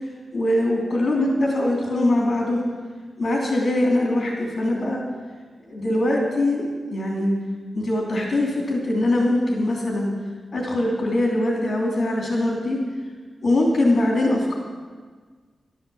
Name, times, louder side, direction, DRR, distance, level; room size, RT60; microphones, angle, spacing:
voice 1, 0.3-2.6 3.2-5.0 5.7-7.3 7.7-10.1 10.5-12.8 13.4-14.5, left 1 dB, 45° left, -2 dB, 3.2 m, -22 dB
12.0 x 11.0 x 7.2 m, 1.5 s
wide cardioid pair, 160°, 0 cm